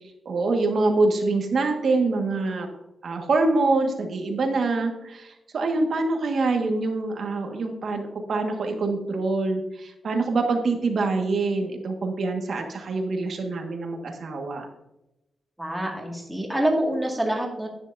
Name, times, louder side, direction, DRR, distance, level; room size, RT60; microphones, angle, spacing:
voice 1, 0.2-2.7 3.0-14.7, right 3 dB, 60° right, 3 dB, 1.7 m, -25 dB
voice 2, 15.6-17.7, right 1 dB, 5° right, -1 dB, 2.1 m, -26 dB
11.0 x 9.7 x 2.7 m, 0.90 s
wide cardioid pair, 130°, 0 cm